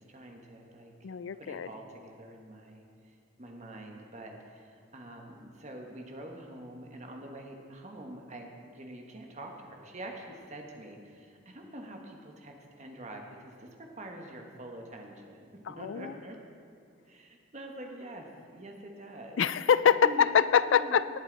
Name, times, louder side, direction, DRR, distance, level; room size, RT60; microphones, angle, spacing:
voice 1, 0.0-0.9 1.3-16.4 17.0-18.3 18.5-19.6 20.0-20.3 20.6-21.0, right 1 dB, 35° right, 2 dB, 1.3 m, -46 dB
voice 2, 1.0-1.7 15.7-16.1 19.4-21.2, left 7 dB, 65° left, 15 dB, 0.4 m, -25 dB
18.0 x 8.2 x 4.0 m, 2.4 s
head